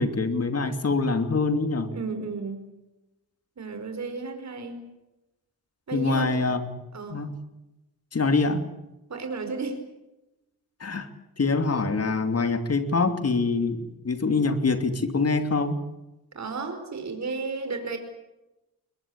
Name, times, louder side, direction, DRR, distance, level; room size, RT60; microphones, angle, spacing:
voice 1, 0.0-1.9 5.9-6.7 7.1-7.3 8.1-8.7 10.8-11.1 11.4-13.8 14.0-15.8, left 3 dB, 40° left, 8 dB, 2.8 m, -24 dB
voice 2, 1.9-2.6 3.6-4.8 5.9-6.5 6.9-7.2 9.1-9.8 16.3-18.0, right 4 dB, 45° right, 6 dB, 5.0 m, -33 dB
22.0 x 21.5 x 8.8 m, 0.97 s
cardioid pair, 80°, 38 cm